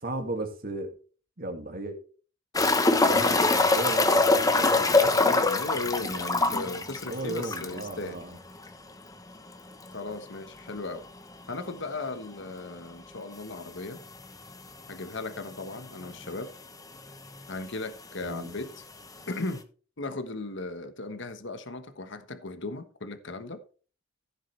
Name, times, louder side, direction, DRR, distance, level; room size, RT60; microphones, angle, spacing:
voice 1, 0.0-0.9 1.4-2.0 3.1-5.2 6.0-8.4 18.2-18.5, right 2 dB, 45° right, 2.2 m, -36 dB
sound 1, 2.5-7.9 8.2-8.3 8.7-8.8 11.5-11.6 13.3-13.4 14.2-14.3 14.5-14.6 15.5-15.6 15.8-16.4 17.4-17.5, left 3 dB, 20° left, 1.0 m, -23 dB
voice 2, 5.1-8.2 9.9-11.0 11.5-14.0 14.9-16.5 17.5-18.7 19.3-19.6 20.0-23.6, left 2 dB, 65° left, 1.3 m, -36 dB
15.0 x 7.5 x 3.3 m
head